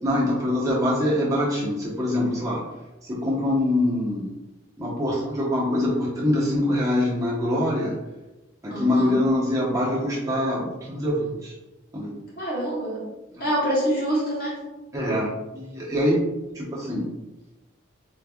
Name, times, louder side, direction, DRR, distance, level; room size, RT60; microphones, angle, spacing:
voice 1, 0.0-2.6 3.0-4.3 4.8-7.9 8.6-11.5 11.9-12.1 13.3-13.5 14.9-15.3 15.5-16.2 16.5-17.1, left 1 dB, 15° right, -7 dB, 1.1 m, -24 dB
voice 2, 8.7-9.1 12.4-13.0 13.4-14.6, equal, 45° left, -5 dB, 1.4 m, -26 dB
3.9 x 3.3 x 2.4 m, 1.0 s
head